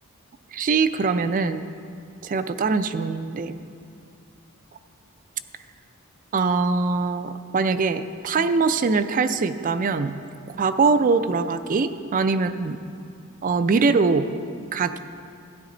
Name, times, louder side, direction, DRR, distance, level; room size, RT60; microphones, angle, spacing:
voice 1, 0.5-1.6 2.2-3.6 6.3-10.2 10.5-12.8 13.4-14.3 14.7-15.0, right 4 dB, 35° right, 11 dB, 0.4 m, -22 dB
13.0 x 10.0 x 3.8 m, 2.4 s
head